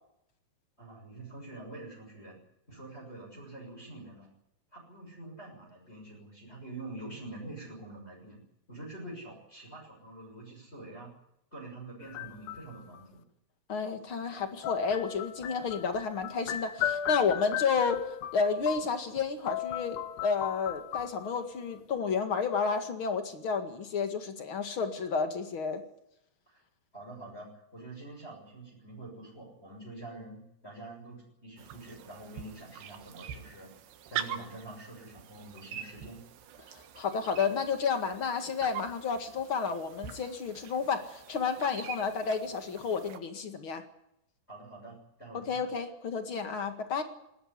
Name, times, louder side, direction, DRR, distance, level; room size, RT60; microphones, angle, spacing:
voice 1, 0.8-2.4 2.7-4.3 4.7-8.4 8.7-11.1 11.5-13.2 26.5-26.6 26.9-33.7 34.1-36.2 44.5-45.6, right 2 dB, 15° left, -1 dB, 6.7 m, -46 dB
sound 1, 12.0-13.0 14.6-19.2 19.5-21.6, left 11 dB, 70° left, 2.5 m, -36 dB
voice 2, 13.7-25.8 36.7-43.8 45.5-47.0, left 5 dB, 45° left, 7 dB, 1.9 m, -31 dB
sound 2, 31.6-43.2, right 9 dB, 80° right, 3.6 m, -44 dB
20.0 x 16.5 x 9.8 m, 0.81 s
omnidirectional pair, 4.8 m